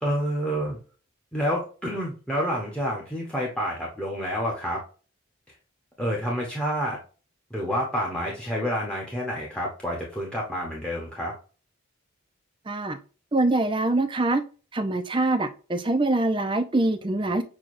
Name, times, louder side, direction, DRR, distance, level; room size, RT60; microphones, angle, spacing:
voice 1, 0.0-0.8 1.3-4.8 6.0-7.0 7.5-11.3, equal, 5° left, -2 dB, 0.8 m, -28 dB
voice 2, 12.7-13.0 13.3-14.4 14.7-17.4, right 2 dB, 25° right, 8 dB, 0.4 m, -24 dB
6.2 x 2.3 x 2.5 m, 0.35 s
head